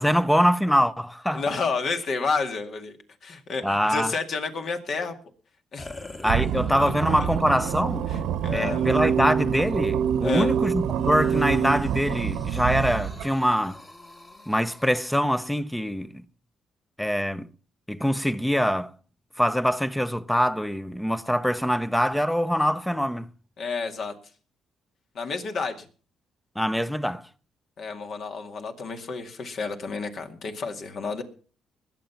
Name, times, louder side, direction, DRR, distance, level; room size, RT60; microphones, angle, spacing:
voice 1, 0.0-1.4 3.6-4.1 6.2-8.1 8.5-13.8 14.5-16.2 17.0-17.5 17.9-18.9 19.4-23.3 26.6-27.3, equal, 5° left, 0.7 m, -24 dB
voice 2, 1.3-3.0 3.2-5.1 5.7-5.9 8.1-8.9 10.2-10.5 23.6-24.1 25.1-25.9 27.8-31.2, left 4 dB, 60° left, 2.1 m, -30 dB
sound 1, 5.8-7.0 7.7-7.8 10.9-14.9, left 2 dB, 25° left, 1.7 m, -45 dB
sound 2, 6.3-13.5, right 9 dB, 85° right, 1.2 m, -29 dB
sound 3, 8.6-11.9, right 7 dB, 60° right, 0.9 m, -25 dB
20.5 x 7.7 x 5.8 m
cardioid pair, 90°, 0 cm